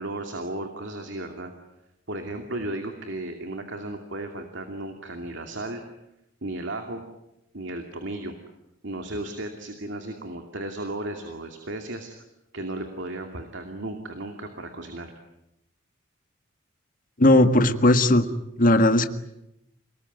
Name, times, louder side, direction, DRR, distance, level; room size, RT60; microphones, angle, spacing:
voice 1, 0.0-1.5 2.1-5.8 6.4-7.0 7.5-8.3 8.8-12.1 12.5-15.1, right 1 dB, 65° right, 5 dB, 2.6 m, -34 dB
voice 2, 17.2-18.3 18.6-19.1, left 1 dB, 45° left, 8 dB, 1.7 m, -17 dB
28.5 x 20.0 x 9.4 m, 0.86 s
head